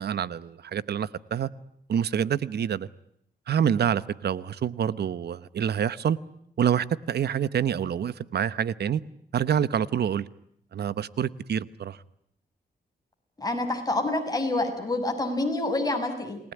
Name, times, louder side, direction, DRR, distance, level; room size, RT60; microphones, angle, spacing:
voice 1, 0.0-1.5 1.9-2.9 3.5-6.2 6.6-9.0 9.3-10.3 10.7-12.0, right 8 dB, 80° right, 1.0 m, -27 dB
voice 2, 13.4-16.4, left 2 dB, 20° left, 6.7 m, -27 dB
29.0 x 19.5 x 9.8 m
wide cardioid pair, 100°, 17 cm